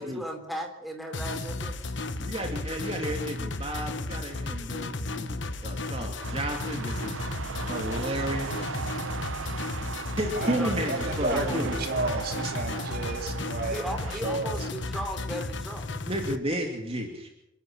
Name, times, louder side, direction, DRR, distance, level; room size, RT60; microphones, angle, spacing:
voice 1, 0.0-1.8 10.3-10.8 11.2-11.6 13.7-15.9, right 1 dB, ahead, 2 dB, 3.3 m, -36 dB
sound 1, 1.1-16.4, left 2 dB, 65° left, 1.2 m, -34 dB
voice 2, 2.2-7.2 7.7-8.6 10.2-11.7 16.0-17.3, right 1 dB, 30° right, 2 dB, 2.7 m, -32 dB
sound 2, 6.2-14.2, right 5 dB, 90° right, 0.8 m, -37 dB
voice 3, 10.3-13.8 14.1-14.6, right 2 dB, 50° right, 4 dB, 3.1 m, -32 dB
28.5 x 11.0 x 8.9 m, 0.81 s
head